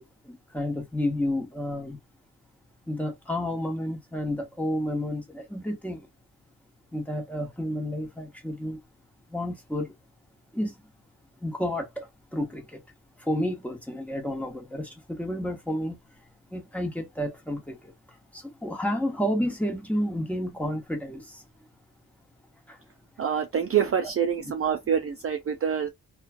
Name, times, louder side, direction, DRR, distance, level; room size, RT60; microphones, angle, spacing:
voice 1, 0.0-2.0 2.9-6.1 6.9-8.8 9.3-9.9 10.5-10.8 11.4-12.8 13.2-16.0 16.5-21.4 22.7-22.8, left 1 dB, 5° left, 1.0 m, -31 dB
voice 2, 23.2-25.9, right 8 dB, 40° right, 0.4 m, -26 dB
3.0 x 2.2 x 2.5 m
wide cardioid pair, 100°, 37 cm